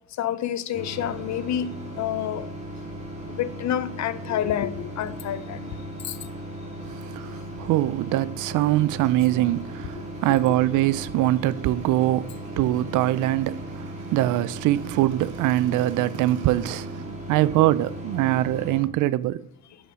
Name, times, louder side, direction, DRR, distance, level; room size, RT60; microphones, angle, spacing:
voice 1, 0.2-2.5 3.3-5.7 6.0-6.2 10.2-10.4, left 10 dB, 65° left, 0.7 m, -28 dB
sound 1, 0.7-18.8, right 1 dB, 20° right, 2.9 m, -37 dB
voice 2, 6.8-19.4, right 15 dB, 85° right, 0.5 m, -23 dB
11.0 x 5.6 x 5.0 m
cardioid pair, 90°, 30 cm